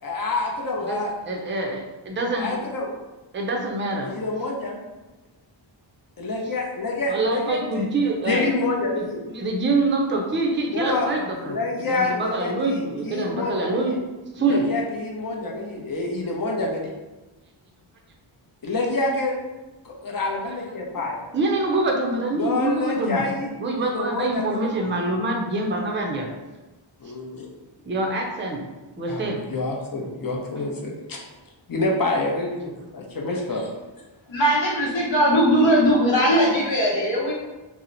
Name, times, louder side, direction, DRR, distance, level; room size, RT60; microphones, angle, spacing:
voice 1, 0.0-1.1 2.3-2.9 4.1-4.8 6.2-7.9 8.2-9.2 10.7-11.1 11.4-14.0 14.4-16.9 18.6-19.5 19.8-21.2 22.4-23.5 23.8-24.4 27.0-27.5 29.1-31.2 31.7-33.7, left 2 dB, 45° left, -1 dB, 0.7 m, -27 dB
voice 2, 0.8-2.6 3.3-4.1 6.4-6.6 7.1-8.6 8.8-14.0 14.3-14.7 20.2-20.8 21.3-23.2 23.6-26.3 27.9-28.7 29.0-29.4 30.6-30.7 33.3-33.7 34.9-35.0, right 2 dB, 25° right, 1 dB, 0.4 m, -26 dB
voice 3, 34.3-37.3, equal, 65° left, -4 dB, 1.0 m, -19 dB
2.8 x 2.0 x 3.8 m, 1.1 s
wide cardioid pair, 105°, 49 cm